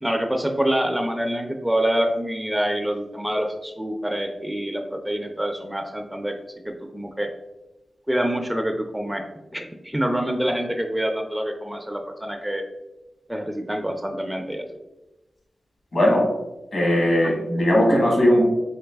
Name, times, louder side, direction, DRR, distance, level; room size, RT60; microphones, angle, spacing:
voice 1, 0.0-6.3 6.6-7.3 8.1-9.2 9.5-12.6 13.3-14.7 17.2-17.3, right 1 dB, 5° right, 4 dB, 0.4 m, -26 dB
voice 2, 15.9-16.2 16.7-18.4, equal, 65° left, -1 dB, 1.5 m, -18 dB
3.9 x 3.6 x 3.4 m, 1.0 s
wide cardioid pair, 85°, 0 cm